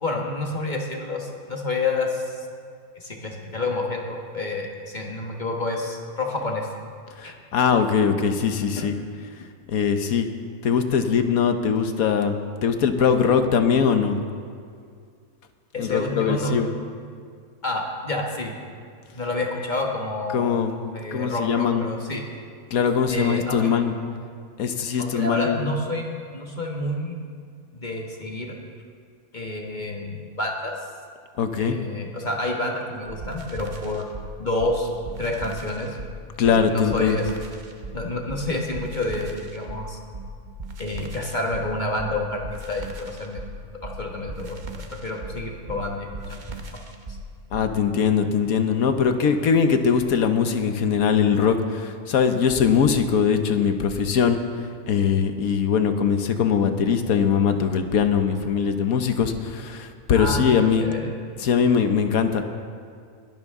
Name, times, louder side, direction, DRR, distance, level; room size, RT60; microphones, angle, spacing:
voice 1, 0.0-2.5 2.9-6.7 7.2-7.3 8.8-8.9 15.7-16.6 17.6-18.5 19.1-20.5 20.9-22.2 23.1-23.7 25.0-27.2 27.7-28.6 29.3-30.8 31.6-34.0 34.4-34.9 35.2-36.0 36.4-37.3 37.9-40.0 40.8-43.4 43.8-46.8 47.1-47.2 60.1-60.4 60.8-61.1, left 2 dB, 30° left, 0 dB, 1.5 m, -29 dB
voice 2, 7.2-8.9 9.7-10.3 10.6-14.2 15.8-16.7 20.3-21.9 22.7-24.0 24.6-25.6 31.4-31.8 36.4-37.2 47.5-54.4 54.9-60.9 61.4-62.4, left 6 dB, 65° left, 7 dB, 1.3 m, -21 dB
sound 1, 33.1-47.7, right 2 dB, 35° right, 1.0 m, -38 dB
21.0 x 12.5 x 3.7 m, 2.2 s
omnidirectional pair, 1.6 m